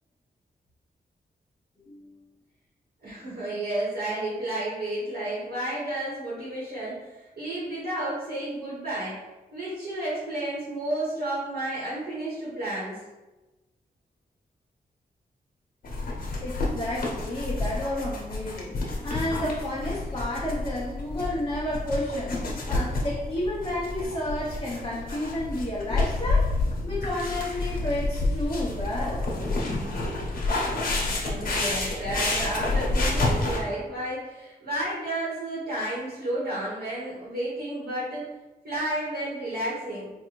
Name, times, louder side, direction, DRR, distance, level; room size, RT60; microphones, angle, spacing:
voice 1, 1.8-2.2 16.4-22.4 22.7-26.5 26.8-29.3, left 1 dB, 25° left, -8 dB, 0.7 m, -31 dB
voice 2, 3.0-9.2 9.5-13.0 31.1-38.2 38.6-40.1, right 1 dB, 80° right, -8 dB, 1.5 m, -31 dB
sound 1, 15.8-33.6, left 2 dB, 60° left, 0.9 m, -29 dB
4.5 x 2.5 x 3.1 m, 1.1 s
wide cardioid pair, 155°, 16 cm